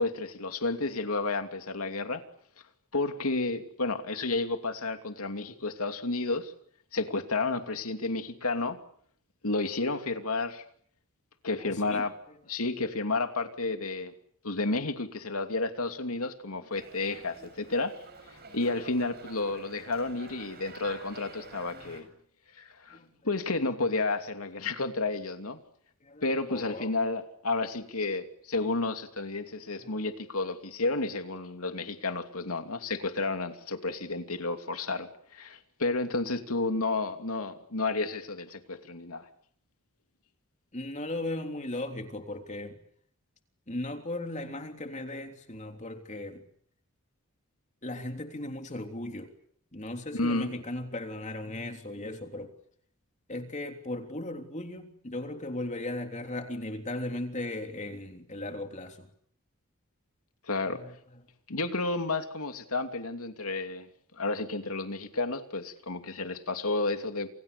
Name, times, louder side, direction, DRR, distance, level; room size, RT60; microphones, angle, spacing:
voice 1, 0.0-2.2 2.9-6.5 6.9-8.8 9.4-10.6 11.4-12.1 12.5-14.1 14.4-17.9 18.5-22.0 22.6-23.0 23.2-25.6 26.2-39.3 50.1-50.5 60.5-60.8 61.5-63.9 64.2-67.3, left 3 dB, 80° left, 7 dB, 2.8 m, -31 dB
voice 2, 11.6-12.1 16.5-16.7 17.1-17.5 18.5-18.6 21.7-22.1 22.9-23.1 26.0-26.9 29.8-30.0 40.7-42.8 43.7-46.4 47.8-49.3 49.7-52.5 53.3-59.1 60.7-61.2, left 1 dB, 35° left, 5 dB, 3.4 m, -37 dB
Dog, 16.7-22.0, right 4 dB, 45° right, 7.0 m, -49 dB
29.0 x 28.5 x 6.9 m, 0.65 s
head